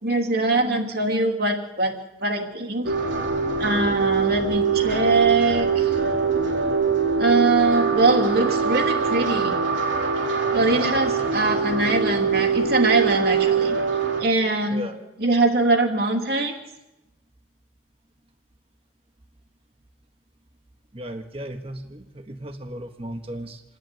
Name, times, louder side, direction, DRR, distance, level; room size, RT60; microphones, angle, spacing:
voice 1, 0.0-1.9 2.2-2.9 3.6-5.9 7.2-9.6 10.5-13.8 14.2-14.9 15.2-16.5, right 2 dB, 55° right, 3 dB, 3.0 m, -22 dB
sound 1, 2.9-14.2, right 5 dB, 85° right, 3.6 m, -23 dB
voice 2, 14.7-15.1 20.9-23.6, equal, 30° right, 6 dB, 1.4 m, -35 dB
28.0 x 11.0 x 9.3 m, 0.99 s
head